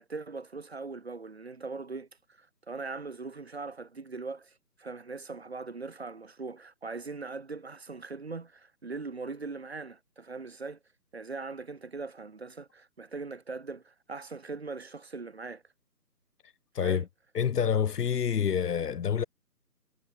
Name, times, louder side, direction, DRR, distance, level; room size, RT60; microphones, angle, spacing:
voice 1, 0.0-2.1 2.4-4.5 4.8-10.8 11.1-15.6 16.8-17.0, right 4 dB, 40° right, 1.3 m, -40 dB
voice 2, 16.7-17.1 17.3-19.2, left 7 dB, 70° left, 0.6 m, -27 dB
figure-of-eight pair, 165°, 49 cm